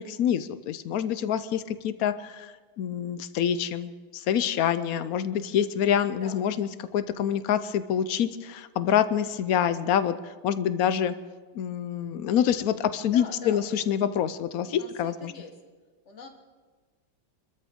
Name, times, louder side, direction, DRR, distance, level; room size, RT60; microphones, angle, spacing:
voice 1, 0.0-11.2 11.5-15.3, left 9 dB, 70° left, 12 dB, 0.8 m, -26 dB
voice 2, 6.2-6.6 13.0-13.7 14.6-15.6 16.1-16.3, left 3 dB, 40° left, 4 dB, 1.7 m, -43 dB
25.5 x 13.5 x 3.7 m, 1.4 s
omnidirectional pair, 2.1 m